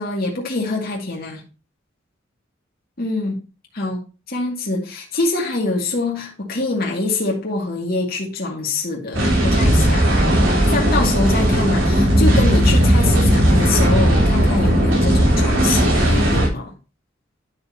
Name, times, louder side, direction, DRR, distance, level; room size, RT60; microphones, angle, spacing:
voice 1, 0.0-1.4 3.0-3.4 3.7-16.7, left 3 dB, 50° left, 2.3 m, -24 dB
sound 1, 9.1-16.5, equal, 80° right, 4.5 m, -16 dB
11.0 x 6.6 x 2.9 m
head